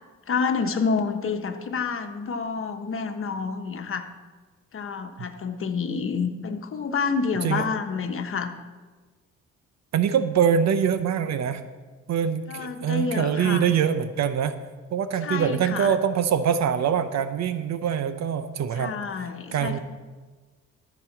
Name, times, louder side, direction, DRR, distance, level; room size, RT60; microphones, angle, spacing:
voice 1, 0.3-4.1 4.7-8.5 12.5-13.7 15.2-15.9 18.8-19.8, left 5 dB, 45° left, 6 dB, 1.2 m, -28 dB
voice 2, 9.9-11.7 12.1-14.6 14.9-18.9 19.5-19.8, right 8 dB, 60° right, 11 dB, 0.7 m, -24 dB
14.0 x 5.2 x 7.3 m, 1.4 s
cardioid pair, 90°, 30 cm